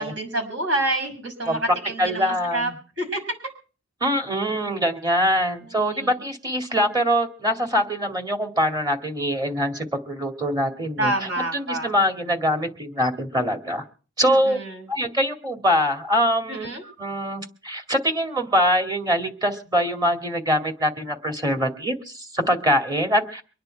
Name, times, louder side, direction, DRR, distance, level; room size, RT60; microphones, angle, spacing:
voice 1, 0.0-2.7 3.0-3.2 5.6-6.1 11.0-11.9 14.2-14.9 16.5-16.8, right 1 dB, 65° right, 4 dB, 5.8 m, -28 dB
voice 2, 2.0-2.8 4.0-11.1 11.5-13.8 14.2-14.6 14.9-16.7 17.0-23.4, equal, 20° right, 5 dB, 2.2 m, -23 dB
24.5 x 10.0 x 4.5 m, 0.37 s
head